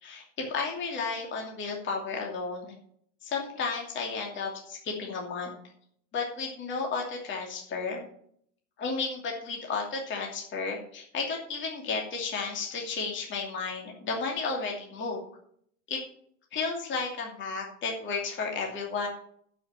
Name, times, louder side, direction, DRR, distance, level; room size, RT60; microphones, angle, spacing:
voice 1, 0.0-2.7 3.2-5.5 6.1-8.1 8.8-15.2 15.9-16.0 16.5-19.1, left 4 dB, 30° left, 0 dB, 2.6 m, -33 dB
12.0 x 5.9 x 7.3 m, 0.65 s
supercardioid pair, 145°, 39 cm